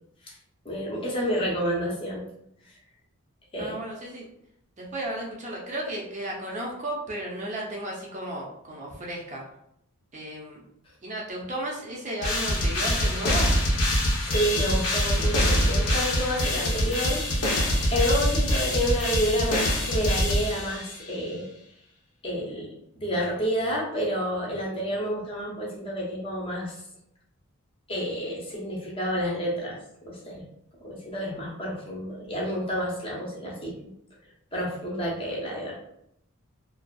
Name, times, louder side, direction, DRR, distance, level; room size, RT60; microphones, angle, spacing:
voice 1, 0.6-2.3 3.5-3.8 14.2-17.2 17.9-21.5 22.2-22.7 23.0-26.7 27.9-29.8 30.1-30.4 30.8-33.9 34.5-35.8, equal, 25° left, -4 dB, 0.6 m, -29 dB
voice 2, 3.6-4.3 4.8-9.4 10.1-10.6 11.0-13.5, right 1 dB, 30° right, -3 dB, 0.5 m, -34 dB
sound 1, 12.2-21.0, left 1 dB, 90° left, 0.6 m, -24 dB
2.5 x 2.3 x 2.3 m, 0.75 s
head